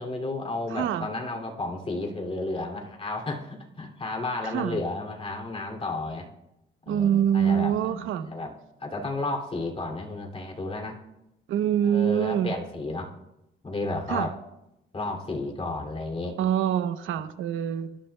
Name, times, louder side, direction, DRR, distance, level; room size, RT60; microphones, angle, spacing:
voice 1, 0.0-6.3 6.9-8.5 8.8-11.0 11.8-13.1 13.6-14.3 14.9-16.4, left 2 dB, 30° left, 2 dB, 2.6 m, -32 dB
voice 2, 0.7-1.1 4.5-4.8 6.9-8.3 11.5-12.5 14.1-14.3 16.4-18.0, right 9 dB, 80° right, 10 dB, 0.9 m, -25 dB
24.5 x 12.0 x 2.3 m, 0.90 s
cardioid pair, 90°, 20 cm